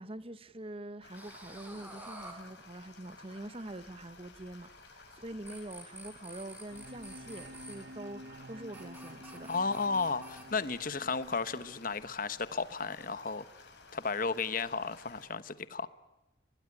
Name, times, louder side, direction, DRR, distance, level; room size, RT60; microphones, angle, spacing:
voice 1, 0.0-9.5, right 1 dB, 30° right, 1.1 m, -45 dB
sound 1, 1.0-15.3, left 3 dB, 65° left, 6.5 m, -55 dB
sound 2, 1.1-3.5 4.7-5.2 5.5-7.8 8.7-10.4, right 1 dB, 10° right, 4.8 m, -50 dB
sound 3, 6.7-12.7, right 1 dB, 55° right, 1.1 m, -51 dB
voice 2, 9.5-13.5 13.9-15.9, left 4 dB, 45° left, 1.1 m, -33 dB
24.5 x 21.0 x 9.8 m
head